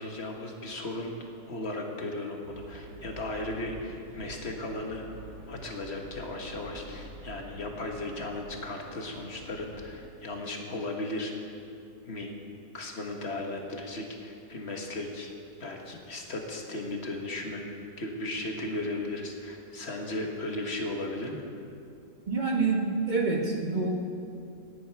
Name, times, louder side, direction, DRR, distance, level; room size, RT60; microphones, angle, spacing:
voice 1, 0.0-5.1 5.5-11.5 12.0-12.3 12.7-15.3 15.6-21.4, left 2 dB, 40° left, 1 dB, 1.7 m, -36 dB
sound 1, 2.4-9.9, right 2 dB, 80° right, 3.0 m, -47 dB
voice 2, 22.3-24.0, right 3 dB, 30° right, 0 dB, 1.4 m, -27 dB
18.0 x 10.5 x 4.7 m, 2.6 s
omnidirectional pair, 1.8 m